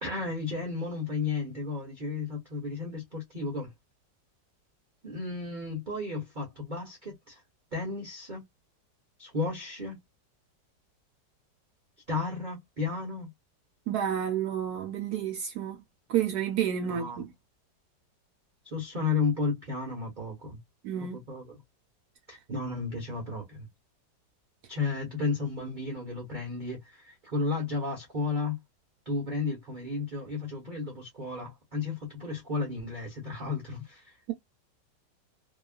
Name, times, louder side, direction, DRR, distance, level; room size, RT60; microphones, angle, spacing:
voice 1, 0.0-3.7 5.0-7.4 7.7-8.4 9.2-10.0 12.1-13.3 16.8-17.2 18.6-20.6 21.0-21.6 22.3-23.7 24.7-28.6 29.1-34.3, left 4 dB, 40° right, 0.7 m, -33 dB
voice 2, 13.9-15.8 16.1-17.3 20.8-21.2, right 9 dB, 70° right, 1.0 m, -30 dB
2.8 x 2.3 x 2.3 m
omnidirectional pair, 1.9 m